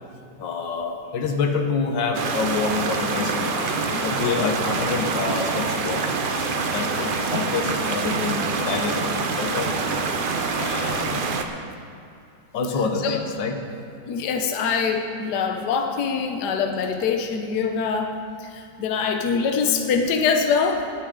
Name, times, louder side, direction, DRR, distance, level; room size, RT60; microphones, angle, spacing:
voice 1, 0.4-9.7 10.5-11.2 12.5-13.6, left 4 dB, 85° left, 4 dB, 1.8 m, -27 dB
sound 1, 2.1-11.4, right 4 dB, 60° right, 0.5 m, -25 dB
voice 2, 14.0-18.1 18.4-20.8, left 5 dB, 70° left, 4 dB, 1.3 m, -24 dB
18.5 x 9.3 x 3.8 m, 2.6 s
omnidirectional pair, 1.9 m